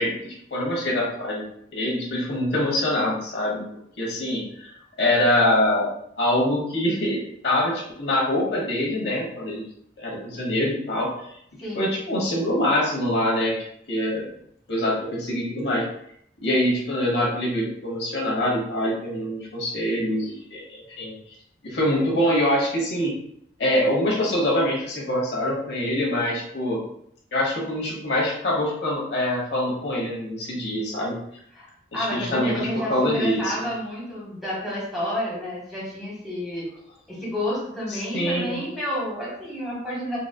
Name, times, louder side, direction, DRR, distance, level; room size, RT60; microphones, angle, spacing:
voice 1, 0.0-1.4 1.7-3.6 4.0-5.9 6.2-9.6 10.0-11.1 11.7-13.5 13.9-14.3 14.7-15.9 16.4-21.1 21.6-23.1 23.6-26.8 27.3-31.2 31.9-33.6 37.9-38.6, left 1 dB, 65° left, -3 dB, 0.8 m, -24 dB
voice 2, 31.9-36.7 37.1-40.2, equal, ahead, -7 dB, 1.1 m, -30 dB
3.9 x 2.5 x 2.2 m, 0.70 s
head